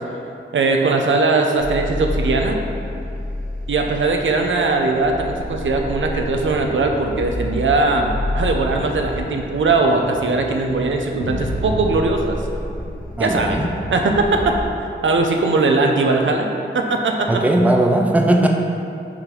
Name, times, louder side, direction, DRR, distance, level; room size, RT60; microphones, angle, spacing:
voice 1, 0.5-2.6 3.7-12.4 13.2-13.6 13.9-14.5 15.0-16.5 16.7-17.3, right 3 dB, 80° right, 3 dB, 0.6 m, -19 dB
sound 1, 1.6-14.7, left 1 dB, 60° left, 1.0 m, -29 dB
voice 2, 13.2-13.7 17.3-18.7, right 1 dB, 10° right, 2 dB, 0.5 m, -17 dB
4.8 x 4.1 x 5.0 m, 2.8 s
wide cardioid pair, 90°, 20 cm